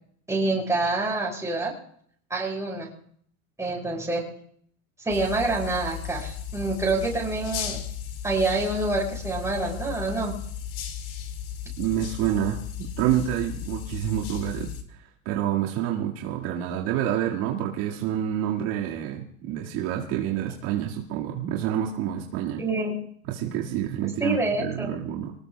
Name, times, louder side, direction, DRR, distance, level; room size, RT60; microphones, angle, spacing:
voice 1, 0.3-1.7 2.3-2.9 3.6-4.2 5.0-7.8 8.2-10.3 22.6-23.0 24.2-24.9, right 2 dB, 5° right, -2 dB, 6.1 m, -27 dB
sound 1, 5.1-14.8, left 8 dB, 45° left, 2.3 m, -35 dB
voice 2, 11.8-15.0 15.3-22.6 23.3-25.3, right 11 dB, 55° right, -2 dB, 2.0 m, -28 dB
25.0 x 19.5 x 2.3 m, 0.62 s
supercardioid pair, 130°, 44 cm